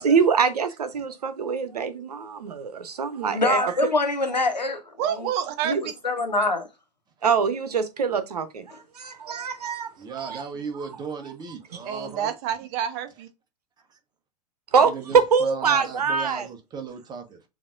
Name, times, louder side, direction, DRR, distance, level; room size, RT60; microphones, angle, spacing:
voice 1, 0.0-3.7 5.6-5.8 7.2-10.4 14.7-16.5, right 6 dB, 65° right, 0.9 m, -24 dB
voice 2, 3.3-4.8 5.1-5.3 6.0-6.7, left 2 dB, 85° left, 1.2 m, -24 dB
voice 3, 5.0-5.9 11.8-13.3, right 9 dB, 40° right, 0.9 m, -28 dB
voice 4, 10.0-12.3 13.9-14.0 14.8-17.5, right 6 dB, 20° right, 1.2 m, -36 dB
7.1 x 2.9 x 2.5 m
figure-of-eight pair, 100°, 21 cm